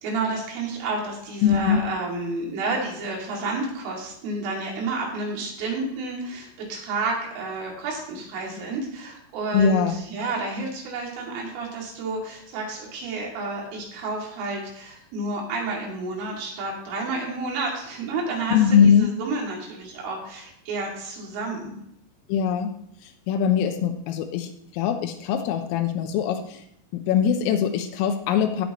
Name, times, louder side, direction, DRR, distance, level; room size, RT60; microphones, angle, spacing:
voice 1, 0.0-21.8, right 3 dB, 75° right, -2 dB, 5.1 m, -30 dB
voice 2, 1.4-1.8 9.5-10.0 18.5-19.1 22.3-22.7 23.3-26.6 26.9-28.7, left 7 dB, 90° left, 5 dB, 3.5 m, -21 dB
17.0 x 6.9 x 3.0 m, 0.75 s
omnidirectional pair, 5.7 m